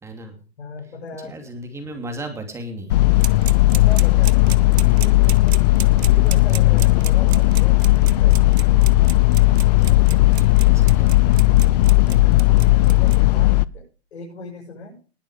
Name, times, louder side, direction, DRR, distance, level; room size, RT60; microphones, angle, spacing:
voice 1, 0.0-0.3 1.2-3.0 9.8-11.3, right 1 dB, 10° right, 4 dB, 2.8 m, -36 dB
voice 2, 0.6-1.4 3.6-5.6 6.0-8.6 11.8-13.8 14.1-15.0, left 3 dB, 85° left, -3 dB, 6.7 m, -38 dB
sound 1, 2.9-13.6, left 18 dB, 40° left, 0.5 m, -15 dB
sound 2, 3.2-13.2, right 10 dB, 80° right, 1.0 m, -33 dB
20.0 x 7.0 x 5.0 m, 0.37 s
hypercardioid pair, 150°, 32 cm